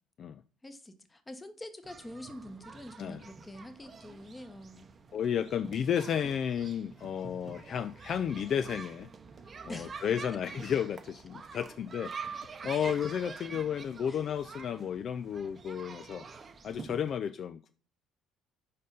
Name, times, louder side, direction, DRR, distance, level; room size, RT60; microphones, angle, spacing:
voice 1, 0.6-4.9 9.7-10.0 10.3-10.4 12.7-13.0 14.1-14.3, left 1 dB, 20° left, 9 dB, 0.9 m, -46 dB
sound 1, 1.8-17.2, right 5 dB, 35° right, 0.7 m, -47 dB
voice 2, 5.1-9.1 9.6-16.2 16.6-17.7, left 8 dB, 55° left, 10 dB, 0.3 m, -33 dB
5.0 x 4.3 x 5.3 m, 0.41 s
supercardioid pair, 75°, 0 cm